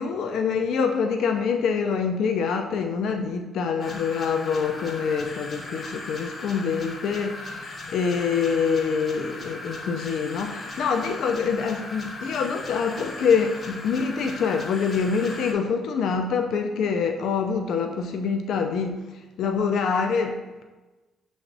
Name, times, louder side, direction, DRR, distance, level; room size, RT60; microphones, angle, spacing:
voice 1, 0.0-20.6, left 6 dB, 75° left, 4 dB, 0.3 m, -25 dB
sound 1, 3.8-15.5, left 2 dB, 45° left, 0.7 m, -38 dB
5.9 x 3.3 x 2.5 m, 1.2 s
cardioid pair, 90°, 0 cm